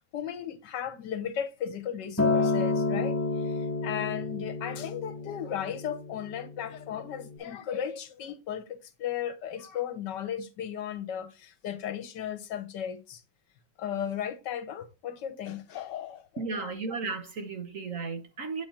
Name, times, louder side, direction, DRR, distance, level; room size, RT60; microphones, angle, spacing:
voice 1, 0.1-13.2 13.8-16.2, left 9 dB, 70° left, 1.4 m, -35 dB
Acoustic guitar, 2.2-6.5 7.3-7.4, left 3 dB, 10° left, 0.9 m, -29 dB
voice 2, 16.4-18.7, right 4 dB, 50° right, 1.1 m, -34 dB
8.7 x 4.3 x 3.8 m
omnidirectional pair, 2.1 m